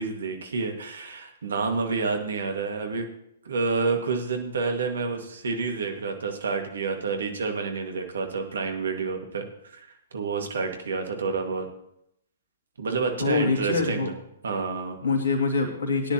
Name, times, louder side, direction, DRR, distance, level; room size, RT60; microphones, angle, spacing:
voice 1, 0.0-3.1 3.5-9.9 10.1-11.7 12.8-14.1 14.4-15.0, right 4 dB, 65° right, 4 dB, 2.0 m, -29 dB
voice 2, 13.2-14.1 15.0-16.1, left 4 dB, 65° left, 2 dB, 2.7 m, -24 dB
18.0 x 10.0 x 3.0 m, 0.77 s
figure-of-eight pair, 115°, 0 cm